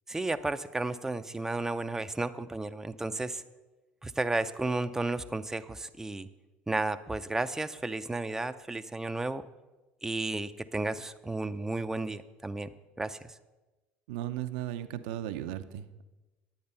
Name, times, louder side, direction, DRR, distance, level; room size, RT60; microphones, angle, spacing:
voice 1, 0.1-3.4 4.0-6.3 6.7-9.4 10.0-12.7 13.0-13.2, right 2 dB, 10° right, 8 dB, 0.5 m, -33 dB
voice 2, 14.1-16.0, right 12 dB, 80° right, 10 dB, 0.6 m, -36 dB
10.5 x 8.6 x 5.5 m, 1.1 s
supercardioid pair, 85°, 5 cm